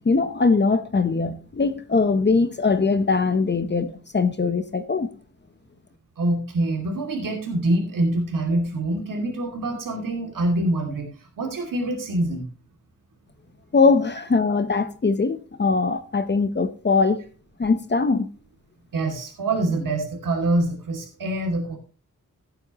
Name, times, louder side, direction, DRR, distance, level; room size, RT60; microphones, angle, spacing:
voice 1, 0.0-5.1 13.7-17.2 17.6-18.3, left 4 dB, 35° left, 0.9 m, -21 dB
voice 2, 6.2-12.5 18.9-21.8, right 1 dB, 85° right, 2.6 m, -25 dB
16.0 x 8.9 x 3.0 m
wide cardioid pair, 160°, 32 cm